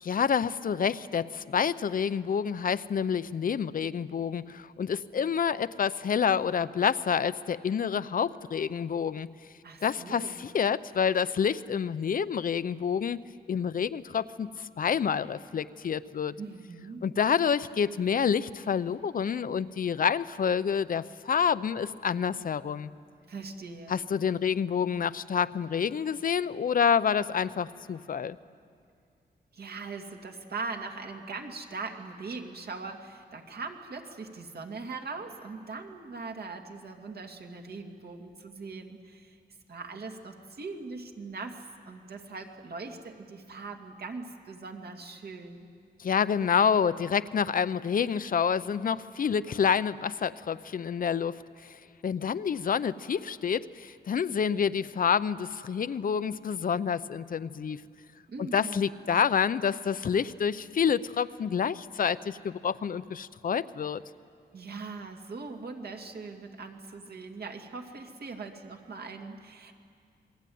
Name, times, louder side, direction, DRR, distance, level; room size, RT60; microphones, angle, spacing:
voice 1, 0.0-9.3 9.8-13.2 13.5-16.3 17.0-22.9 23.9-28.4 46.0-51.8 52.0-57.8 58.4-64.0, left 7 dB, 55° left, 15 dB, 0.6 m, -28 dB
voice 2, 9.6-10.4 16.4-17.1 23.3-24.0 29.5-39.4 39.7-45.7 58.3-58.9 64.5-69.7, right 4 dB, 65° right, 3 dB, 2.3 m, -41 dB
27.5 x 22.0 x 9.4 m, 2.3 s
wide cardioid pair, 150°, 17 cm